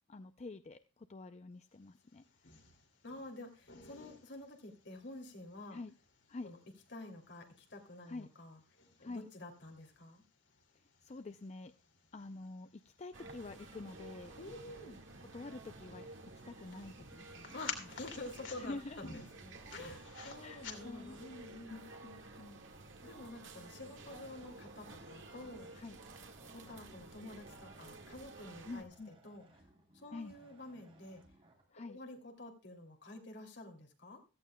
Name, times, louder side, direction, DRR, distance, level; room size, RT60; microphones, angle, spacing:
voice 1, 0.1-2.2 5.7-5.9 6.3-6.5 8.1-8.3 9.0-9.3 11.0-11.7 12.1-14.3 15.3-16.1 16.5-17.9 18.6-19.0 20.4-21.2 21.7-22.6 25.7-26.0 28.7-29.1 30.1-30.3 31.7-32.0, left 3 dB, 35° left, 10 dB, 0.5 m, -47 dB
sound 1, 1.8-21.3, left 5 dB, 85° left, 2.6 m, -53 dB
voice 2, 3.0-5.8 6.4-6.6 6.9-8.6 9.0-10.2 14.4-15.0 17.5-21.8 23.0-25.7 26.5-29.4 29.9-31.2 31.9-34.2, left 2 dB, 65° left, 4 dB, 2.7 m, -49 dB
sound 2, 13.1-28.8, right 2 dB, 85° right, 1.8 m, -53 dB
sound 3, 24.0-31.6, right 1 dB, 30° right, 3.4 m, -64 dB
16.5 x 14.0 x 2.2 m, 0.32 s
head